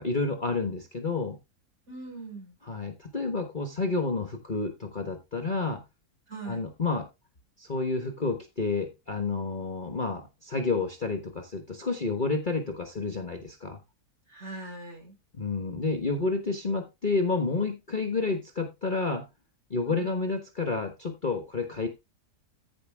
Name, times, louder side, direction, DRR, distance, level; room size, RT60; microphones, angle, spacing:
voice 1, 0.0-1.4 2.7-5.8 6.5-7.1 7.6-13.8 15.3-19.2 19.7-21.9, left 3 dB, 30° left, 1.3 m, -30 dB
voice 2, 1.9-2.6 6.3-6.7 14.3-15.2 19.8-20.2, right 2 dB, 40° right, 4.4 m, -41 dB
14.5 x 5.2 x 3.5 m
omnidirectional pair, 1.8 m